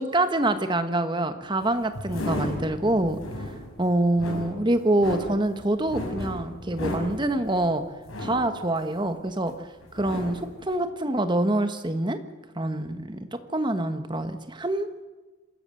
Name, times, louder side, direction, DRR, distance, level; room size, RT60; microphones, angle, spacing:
voice 1, 0.0-3.2 3.8-7.8 8.2-9.5 9.9-12.2 12.5-14.9, right 1 dB, 20° right, 9 dB, 1.3 m, -25 dB
sound 1, 1.6-9.5 9.8-10.6, left 1 dB, 75° left, 6.3 m, -35 dB
26.5 x 14.0 x 7.8 m, 1.2 s
head